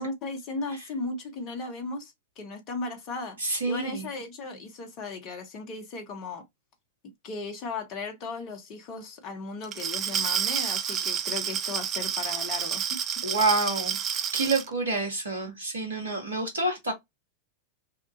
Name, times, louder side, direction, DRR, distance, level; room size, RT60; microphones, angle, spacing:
voice 1, 0.0-3.4 3.6-6.4 7.2-12.9, left 3 dB, 35° left, 0.8 m, -36 dB
voice 2, 3.4-4.1 13.2-16.9, right 2 dB, 70° right, 1.1 m, -28 dB
Glass, 9.6-14.7, right 8 dB, 30° right, 0.3 m, -29 dB
2.8 x 2.3 x 2.5 m
figure-of-eight pair, 90°, 0 cm